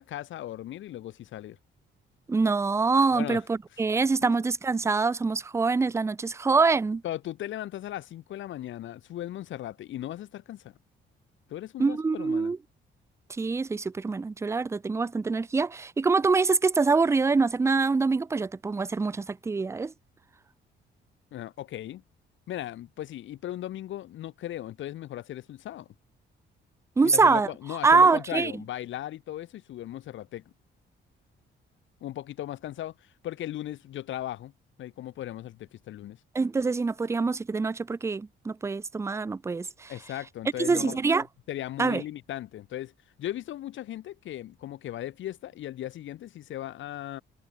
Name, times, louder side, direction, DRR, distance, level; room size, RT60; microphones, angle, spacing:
voice 1, 0.0-1.6 3.1-3.4 7.0-10.7 11.5-12.5 21.3-22.0 22.5-25.9 27.0-30.4 32.0-34.5 34.8-36.2 39.9-41.0 41.5-42.9 43.2-47.2, left 13 dB, 75° left, 1.4 m, -37 dB
voice 2, 2.3-7.0 11.8-12.6 13.3-19.9 27.0-28.5 36.3-39.9 40.6-41.3 41.8-42.0, right 4 dB, 15° right, 0.4 m, -25 dB
cardioid pair, 90°, 20 cm